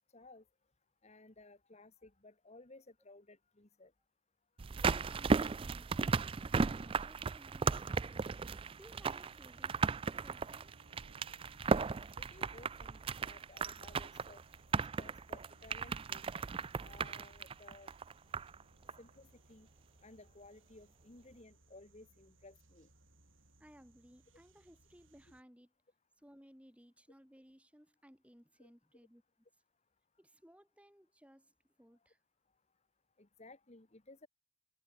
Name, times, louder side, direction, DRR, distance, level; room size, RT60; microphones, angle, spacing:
voice 1, 0.1-0.4 1.0-3.9 11.9-14.4 15.0-16.2 16.8-18.0 19.0-19.7 20.0-22.9 28.6-28.7 33.2-34.3, left 2 dB, 30° left, 1.4 m, -58 dB
sound 1, 4.6-18.6 18.9-19.0, right 4 dB, 25° right, 0.3 m, -36 dB
voice 2, 4.7-9.8 10.2-10.7 23.6-25.7 26.2-29.2 30.2-32.2, equal, 5° right, 2.9 m, -61 dB
sound 2, 8.2-25.4, right 1 dB, 60° right, 6.6 m, -66 dB
head